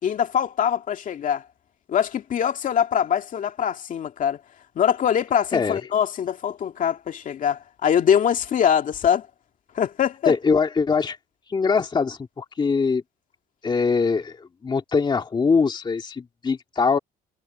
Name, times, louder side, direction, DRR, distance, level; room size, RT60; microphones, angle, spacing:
voice 1, 0.0-1.4 1.9-4.4 4.8-9.3 9.7-10.3, left 8 dB, 50° left, 2.3 m, -23 dB
voice 2, 10.3-11.2 11.5-13.0 13.6-17.0, left 5 dB, 25° left, 1.9 m, -22 dB
cardioid pair, 110°, 17 cm